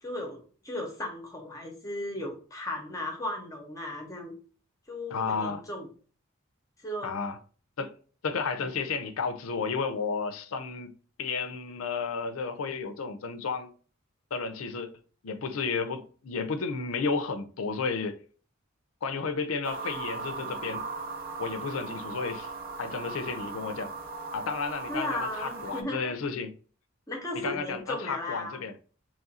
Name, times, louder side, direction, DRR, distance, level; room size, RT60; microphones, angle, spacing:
voice 1, 0.0-4.3 4.9-5.9 6.8-7.2 8.6-8.7 24.9-26.0 27.1-28.6, left 1 dB, 15° left, 0.7 m, -36 dB
voice 2, 5.1-5.6 7.0-7.4 7.8-7.9 8.2-10.9 11.2-13.7 14.3-14.9 15.2-18.2 19.0-20.8 21.4-22.5 22.8-23.9 24.3-26.5 27.3-28.7, left 5 dB, 90° left, 0.5 m, -32 dB
sound 1, 19.6-25.8, right 3 dB, 45° right, 0.6 m, -38 dB
3.1 x 2.4 x 4.0 m
head